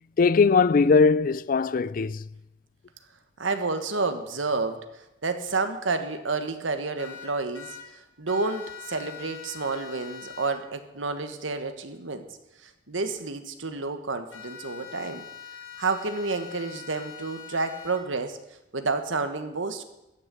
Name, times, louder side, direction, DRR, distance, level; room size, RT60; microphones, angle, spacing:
voice 1, 0.2-2.2, left 4 dB, 45° left, 0.4 m, -20 dB
voice 2, 3.4-4.8 5.2-7.8 8.2-12.3 12.9-15.3 15.8-18.4 18.7-19.8, right 3 dB, 90° right, 1.4 m, -30 dB
sound 1, 7.0-7.8 8.3-10.5 14.3-18.0, left 8 dB, 75° left, 2.2 m, -43 dB
14.0 x 6.5 x 9.9 m
head